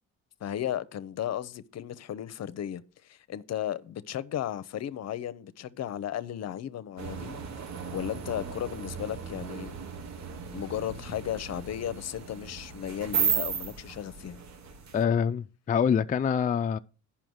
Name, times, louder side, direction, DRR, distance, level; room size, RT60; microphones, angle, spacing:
voice 1, 0.4-7.4 7.9-9.7 10.5-14.4, left 11 dB, 60° left, 0.7 m, -35 dB
sound 1, 7.0-15.0, right 6 dB, 65° right, 1.3 m, -35 dB
voice 2, 14.9-16.8, left 7 dB, 25° left, 0.4 m, -25 dB
9.0 x 5.8 x 6.3 m
cardioid pair, 90°, 30 cm